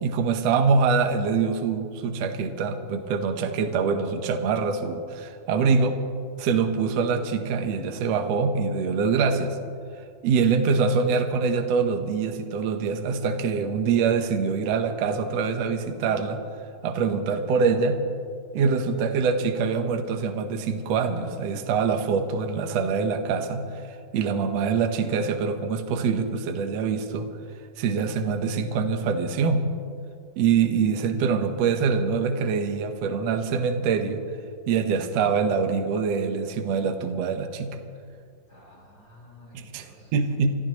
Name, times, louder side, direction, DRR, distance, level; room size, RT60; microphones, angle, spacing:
voice 1, 0.0-6.0 6.4-9.6 10.2-16.4 16.8-18.0 18.5-27.3 27.8-29.7 30.4-34.2 34.7-37.8 39.5-40.5, right 5 dB, 65° right, 6 dB, 1.7 m, -24 dB
voice 2, 38.5-40.1, left 1 dB, 30° left, -4 dB, 5.1 m, -51 dB
29.5 x 14.0 x 3.1 m, 2.2 s
omnidirectional pair, 4.3 m